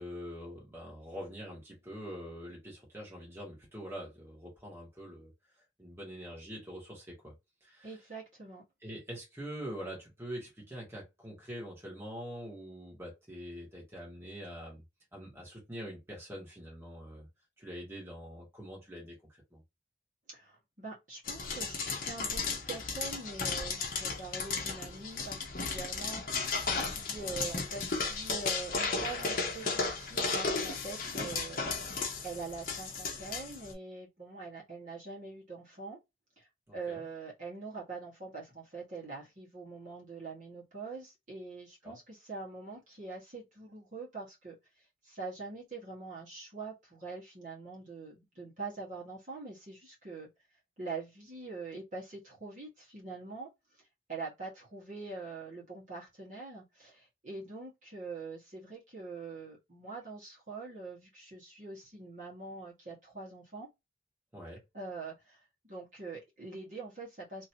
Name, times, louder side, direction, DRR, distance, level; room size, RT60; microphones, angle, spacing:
voice 1, 0.0-5.3 5.8-7.3 7.6-8.0 8.8-14.8 15.1-17.3 17.6-19.2 19.5-19.6 36.7-37.0 41.8-41.9 64.3-64.6, equal, 15° right, 1.5 m, -44 dB
voice 2, 7.8-8.6 20.3-36.0 36.4-50.3 50.8-53.8 54.1-63.7 64.7-65.4 65.7-67.5, right 3 dB, 45° right, 1.5 m, -44 dB
sound 1, 21.3-33.7, left 4 dB, 50° left, 0.9 m, -35 dB
3.0 x 2.8 x 2.8 m
head